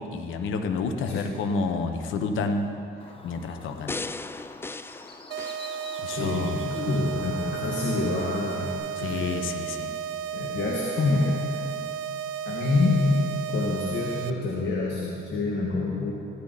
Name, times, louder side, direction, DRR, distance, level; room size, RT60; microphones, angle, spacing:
voice 1, 0.0-2.7 3.2-4.0 6.0-6.7 9.0-9.9, left 4 dB, 80° left, 6 dB, 1.1 m, -29 dB
Bird, 3.0-8.7, left 3 dB, 25° left, 1.3 m, -46 dB
sound 1, 3.9-6.4 6.9-7.0, left 3 dB, 10° left, 0.3 m, -37 dB
sound 2, 5.3-14.3, right 8 dB, 90° right, 0.6 m, -33 dB
voice 2, 6.0-9.3 10.3-11.4 12.5-13.2 13.5-16.1, left 3 dB, 60° left, -3 dB, 1.9 m, -27 dB
16.0 x 13.0 x 4.2 m, 2.6 s
cardioid pair, 90°, 20 cm